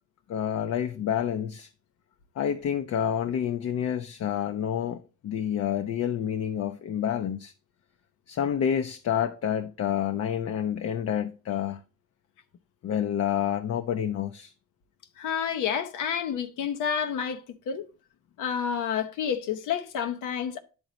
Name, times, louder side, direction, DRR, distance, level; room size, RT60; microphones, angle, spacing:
voice 1, 0.3-1.7 2.4-7.5 8.3-11.8 12.8-14.5, left 9 dB, 55° left, 0.6 m, -28 dB
voice 2, 15.2-17.9 18.4-20.6, left 7 dB, 85° left, 0.8 m, -29 dB
10.5 x 3.9 x 3.0 m
cardioid pair, 90°, 30 cm